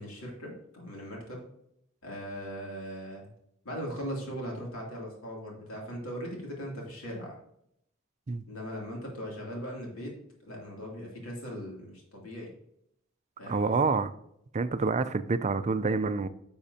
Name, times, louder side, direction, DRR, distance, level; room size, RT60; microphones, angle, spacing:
voice 1, 0.0-1.4 2.0-3.3 3.6-7.3 8.5-10.1 10.4-12.5 13.4-14.0, equal, 75° left, -2 dB, 2.8 m, -39 dB
voice 2, 13.5-14.1 14.5-16.3, right 4 dB, 30° right, 12 dB, 0.4 m, -27 dB
10.0 x 7.1 x 2.8 m, 0.75 s
head